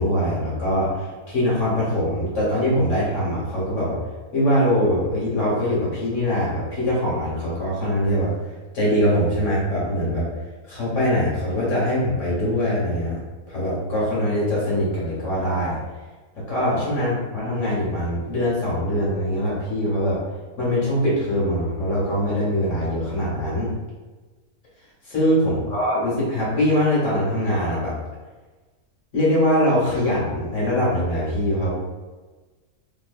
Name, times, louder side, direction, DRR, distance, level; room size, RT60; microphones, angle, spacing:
voice 1, 0.0-4.0 4.3-8.3 8.7-10.3 10.7-13.2 13.5-15.8 16.3-20.2 20.6-23.7 25.0-27.9 29.1-31.7, equal, 55° left, -7 dB, 1.6 m, -22 dB
3.1 x 3.0 x 2.5 m, 1.3 s
omnidirectional pair, 1.5 m